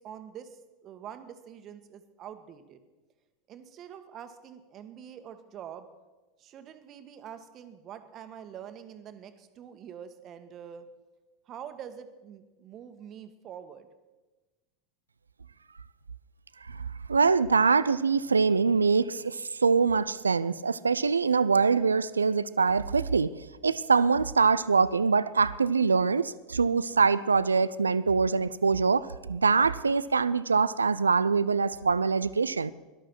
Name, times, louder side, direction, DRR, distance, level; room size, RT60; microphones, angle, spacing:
voice 1, 0.0-2.8 3.5-5.9 6.4-10.9 11.5-13.9, right 9 dB, 40° right, 1.6 m, -45 dB
voice 2, 16.7-23.3 23.6-32.7, right 5 dB, 90° right, 0.5 m, -24 dB
18.0 x 12.0 x 6.1 m
hypercardioid pair, 85°, 0 cm